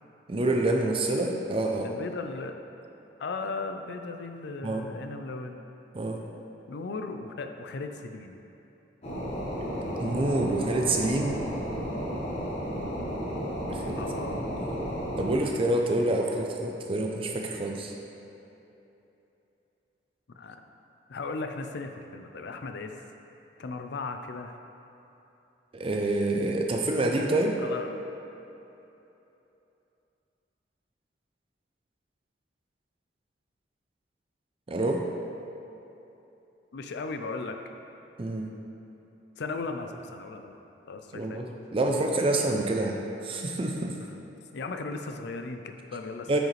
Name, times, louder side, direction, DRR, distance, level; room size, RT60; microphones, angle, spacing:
voice 1, 0.3-1.9 4.6-4.9 5.9-6.2 10.0-11.4 13.7-14.0 14.4-17.9 25.7-27.6 34.7-35.0 38.2-38.5 41.1-44.0 46.3-46.4, right 2 dB, 30° right, 1 dB, 0.5 m, -27 dB
voice 2, 1.8-2.5 3.2-5.6 6.7-8.4 14.0-14.4 20.4-20.6 21.1-22.9 23.6-24.6 27.6-28.0 36.7-37.6 39.4-40.5 40.9-41.4 44.0-44.2 44.5-46.4, left 3 dB, 65° left, 6 dB, 0.5 m, -36 dB
sound 1, 9.0-15.4, equal, 35° left, 1.2 m, -33 dB
9.0 x 5.0 x 3.2 m, 3.0 s
head